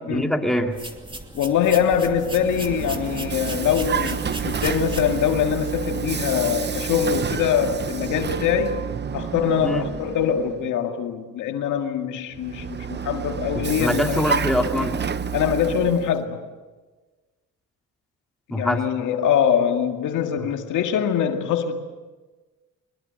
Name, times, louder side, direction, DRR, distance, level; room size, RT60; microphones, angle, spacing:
voice 1, 0.1-0.8 9.6-9.8 13.5-14.9 18.5-18.9, equal, ahead, 2.4 m, -24 dB
sound 1, 0.7-5.8, right 2 dB, 15° right, 2.7 m, -37 dB
voice 2, 1.3-8.8 9.1-14.2 15.3-16.4 18.5-21.8, left 8 dB, 80° left, 2.1 m, -23 dB
Vehicle, 2.2-10.7 12.3-16.2, right 6 dB, 35° right, 0.9 m, -29 dB
23.0 x 21.5 x 7.9 m
cardioid pair, 90°, 30 cm